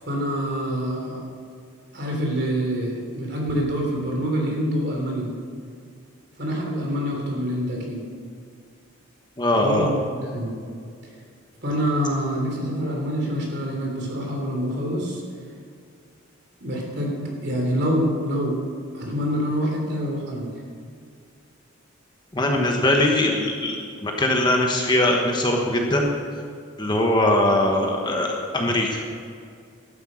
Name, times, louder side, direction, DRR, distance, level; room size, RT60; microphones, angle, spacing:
voice 1, 0.0-1.2 1.9-5.3 6.4-8.0 9.6-10.0 10.3-10.5 11.6-15.2 16.6-18.6 18.9-20.5, equal, 50° right, -1 dB, 3.2 m, -26 dB
voice 2, 9.4-9.9 22.3-26.1 26.8-29.0, left 1 dB, 20° left, 1 dB, 1.2 m, -21 dB
12.0 x 9.8 x 6.4 m, 2.2 s
head